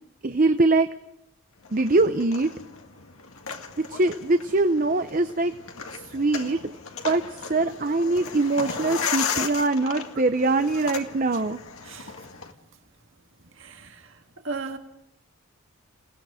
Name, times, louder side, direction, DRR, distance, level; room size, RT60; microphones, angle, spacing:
voice 1, 0.2-0.9 1.7-2.5 3.8-5.5 5.9-6.7 7.0-11.6, right 2 dB, 40° right, 0.7 m, -23 dB
sound 1, 1.6-12.5, left 6 dB, 80° left, 1.9 m, -35 dB
voice 2, 13.6-14.1 14.4-14.8, right 4 dB, 65° right, 1.9 m, -36 dB
29.0 x 18.0 x 5.0 m
head